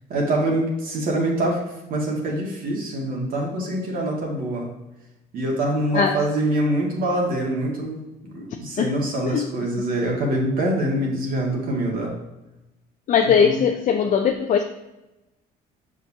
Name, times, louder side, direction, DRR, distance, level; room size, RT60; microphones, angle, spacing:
voice 1, 0.1-1.6 1.9-4.7 5.3-8.0 8.3-12.1 13.2-13.6, right 1 dB, 60° right, -2 dB, 1.9 m, -24 dB
voice 2, 13.1-14.6, left 7 dB, 50° left, 4 dB, 0.5 m, -20 dB
6.6 x 5.1 x 2.8 m, 0.99 s
cardioid pair, 95°, 17 cm